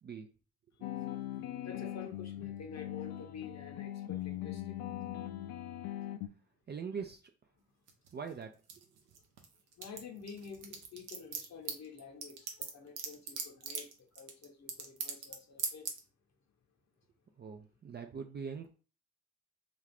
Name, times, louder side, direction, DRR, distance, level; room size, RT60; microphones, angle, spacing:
sound 1, 0.8-6.3, left 13 dB, 65° left, 0.5 m, -40 dB
voice 1, 1.6-4.8 9.8-15.9, left 6 dB, 45° left, 0.9 m, -49 dB
voice 2, 6.7-7.2 8.1-8.5 17.4-18.7, right 6 dB, 30° right, 0.4 m, -42 dB
sound 2, 7.9-9.5 9.7-15.3 15.6-16.0, right 6 dB, 75° right, 0.7 m, -39 dB
2.5 x 2.3 x 3.3 m
hypercardioid pair, 45°, 39 cm